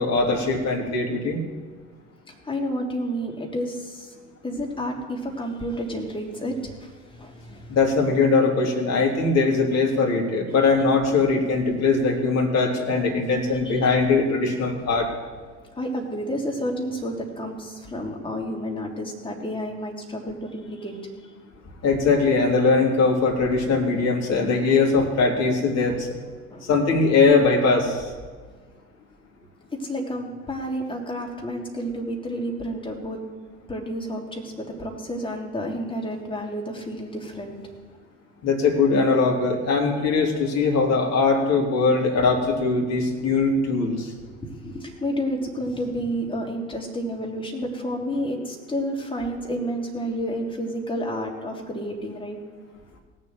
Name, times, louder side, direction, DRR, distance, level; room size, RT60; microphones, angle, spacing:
voice 1, 0.0-1.4 7.7-15.1 21.8-26.1 26.7-28.1 38.4-44.1, left 4 dB, 45° left, 1 dB, 3.1 m, -21 dB
voice 2, 2.3-4.1 4.4-7.7 13.6-13.9 15.7-21.0 26.5-26.7 29.7-33.2 33.7-37.6 44.4-52.4, equal, 15° left, 0 dB, 3.3 m, -30 dB
17.5 x 7.5 x 7.8 m, 1.5 s
figure-of-eight pair, 65°, 38 cm